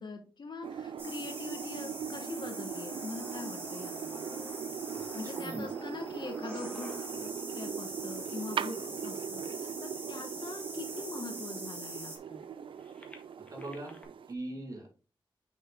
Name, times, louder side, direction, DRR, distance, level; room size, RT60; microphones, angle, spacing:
voice 1, 0.0-4.2 5.1-12.5, left 3 dB, 60° left, 5 dB, 1.5 m, -43 dB
sound 1, 0.6-10.6 11.2-11.3 11.6-14.0, left 1 dB, 15° left, 1.6 m, -53 dB
sound 2, 0.6-14.3, right 7 dB, 85° right, 0.4 m, -40 dB
sound 3, 1.0-12.2, right 2 dB, 25° right, 2.1 m, -44 dB
voice 2, 5.3-5.7 13.5-14.0 14.3-14.9, right 1 dB, 40° right, 0 dB, 2.8 m, -40 dB
6.3 x 5.3 x 3.6 m, 0.34 s
wide cardioid pair, 110°, 9 cm